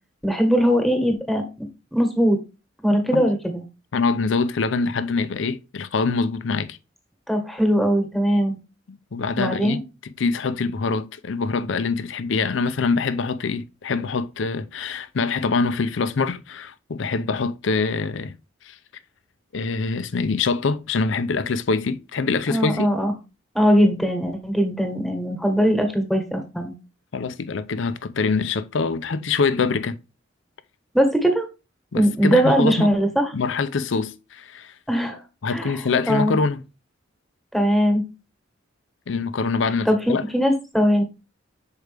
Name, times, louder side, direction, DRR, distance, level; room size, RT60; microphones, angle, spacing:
voice 1, 0.2-1.4 1.9-2.4 2.8-3.6 7.3-8.6 9.4-9.8 22.5-23.1 23.5-26.7 30.9-31.5 31.9-33.3 34.9-35.2 35.5-35.7 36.1-36.3 37.5-38.0 39.8-41.0, equal, ahead, 1.3 m, -20 dB
voice 2, 3.9-6.8 8.9-9.8 10.2-18.3 18.6-18.8 19.5-22.9 27.1-30.0 31.9-32.9 33.3-34.7 35.4-36.6 39.1-40.2, left 4 dB, 70° left, 0.5 m, -24 dB
6.6 x 4.6 x 3.4 m
head